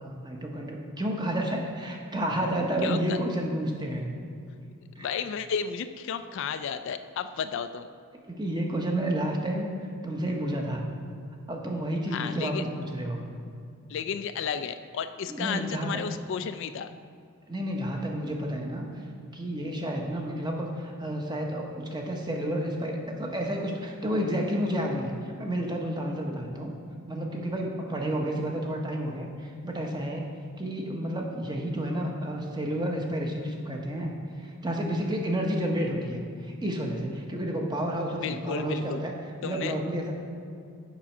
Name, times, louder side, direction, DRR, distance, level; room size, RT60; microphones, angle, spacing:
voice 1, 0.0-4.1 5.0-5.1 8.3-10.9 11.5-13.2 15.3-16.0 17.5-18.9 19.3-26.7 27.1-30.2 30.6-39.1 39.4-40.1, right 1 dB, 20° right, 1 dB, 0.9 m, -30 dB
voice 2, 2.8-3.2 5.0-7.9 12.1-12.6 13.9-16.9 38.2-39.1 39.4-39.7, left 7 dB, 55° left, 10 dB, 0.3 m, -33 dB
7.3 x 5.4 x 5.9 m, 2.4 s
head